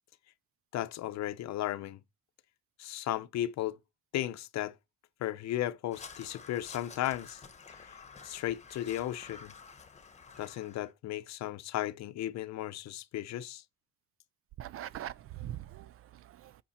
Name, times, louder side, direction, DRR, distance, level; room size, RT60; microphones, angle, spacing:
voice 1, 0.7-2.0 2.8-3.8 4.1-4.7 5.2-7.4 7.9-8.0 8.2-9.5 10.4-13.6, left 13 dB, 50° left, 0.7 m, -35 dB
Crow, 5.9-10.9, left 5 dB, 20° left, 1.2 m, -51 dB
voice 2, 14.6-16.6, right 12 dB, 40° right, 0.4 m, -42 dB
8.5 x 6.0 x 4.3 m
cardioid pair, 150°, 35 cm